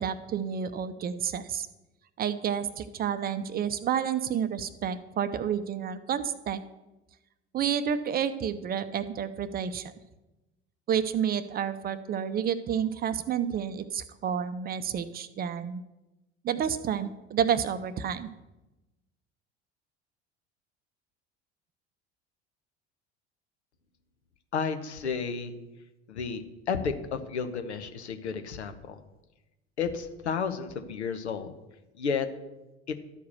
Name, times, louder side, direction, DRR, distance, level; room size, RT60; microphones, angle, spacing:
voice 1, 0.0-1.7 2.2-6.6 7.5-9.9 10.9-15.8 16.4-18.3, right 8 dB, 25° right, 12 dB, 0.5 m, -30 dB
voice 2, 24.5-25.5 26.1-29.0 29.8-31.5 32.0-32.3 32.9-33.0, left 6 dB, 75° left, 8 dB, 0.8 m, -32 dB
12.0 x 4.7 x 6.6 m, 1.0 s
figure-of-eight pair, 65°, 34 cm